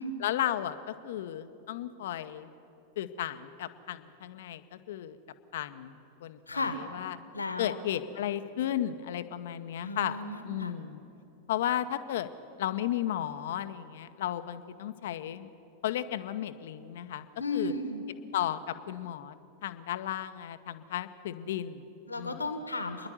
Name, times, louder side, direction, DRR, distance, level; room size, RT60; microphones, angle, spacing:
voice 1, 0.2-2.5 3.0-5.2 5.5-7.2 7.6-10.2 10.4-11.0 11.5-12.3 12.6-15.5 15.8-17.7 18.3-19.3 19.6-21.9 22.2-22.5, left 11 dB, 55° left, 11 dB, 0.8 m, -34 dB
voice 2, 6.5-6.8 7.3-7.8 9.8-10.7 17.4-18.0 22.1-23.1, left 2 dB, 80° left, 8 dB, 1.5 m, -34 dB
26.0 x 11.0 x 9.5 m, 2.8 s
figure-of-eight pair, 90°, 0 cm